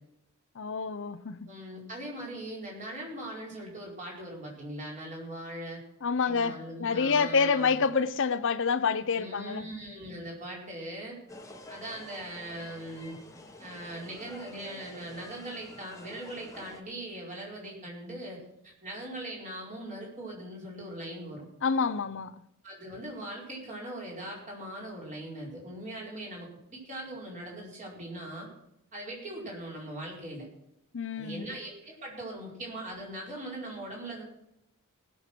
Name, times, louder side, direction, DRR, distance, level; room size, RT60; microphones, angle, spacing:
voice 1, 0.6-1.5 6.0-9.7 21.6-22.3 30.9-31.5, left 5 dB, 60° left, 0.7 m, -28 dB
voice 2, 1.5-5.8 6.2-7.8 9.1-11.2 11.7-13.2 13.6-21.5 22.6-28.5 28.9-30.5 31.1-34.2, right 1 dB, 35° right, 4.7 m, -40 dB
sound 1, 11.3-16.8, left 1 dB, 15° left, 1.2 m, -48 dB
18.5 x 6.6 x 6.1 m
head